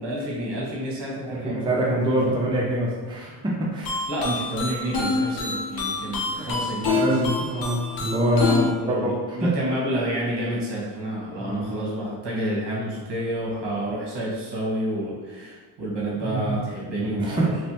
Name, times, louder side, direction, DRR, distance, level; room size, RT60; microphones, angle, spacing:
voice 1, 0.0-2.2 4.1-7.4 8.4-17.7, right 1 dB, 65° right, -4 dB, 1.4 m, -29 dB
voice 2, 1.3-4.0 6.4-9.5 11.4-11.7 16.2-16.6 17.0-17.5, right 1 dB, 10° right, -3 dB, 0.6 m, -25 dB
sound 1, 3.8-8.7, left 4 dB, 50° left, 0.8 m, -27 dB
3.2 x 3.1 x 2.9 m, 1.3 s
cardioid pair, 90°, 46 cm